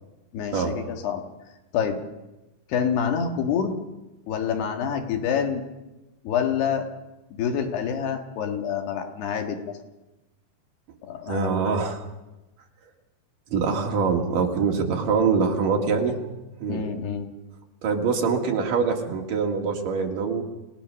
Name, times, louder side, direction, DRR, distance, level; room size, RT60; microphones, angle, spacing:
voice 1, 0.3-1.2 1.7-2.0 2.7-3.8 4.3-5.6 6.3-6.9 7.4-9.7 11.0-11.8 16.7-17.3, left 7 dB, 75° left, 4 dB, 3.8 m, -27 dB
voice 2, 11.3-12.0 13.5-16.2 16.6-16.8 17.8-20.4, right 5 dB, 55° right, 2 dB, 3.5 m, -24 dB
28.0 x 18.5 x 6.5 m, 1.0 s
omnidirectional pair, 4.8 m